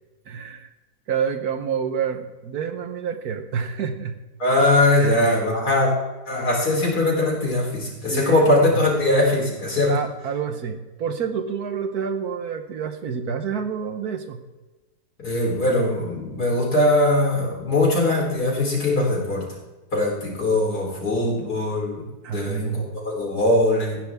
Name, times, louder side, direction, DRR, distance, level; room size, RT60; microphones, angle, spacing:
voice 1, 0.3-0.7 1.1-4.2 5.0-5.3 7.8-8.5 8.7-8.9 9.8-14.4 22.2-22.9, right 7 dB, 70° right, 8 dB, 1.5 m, -28 dB
voice 2, 4.4-5.9 6.3-9.9 15.2-19.5 19.9-24.0, left 1 dB, 70° left, -2 dB, 4.2 m, -21 dB
15.5 x 9.8 x 3.6 m, 1.2 s
omnidirectional pair, 1.7 m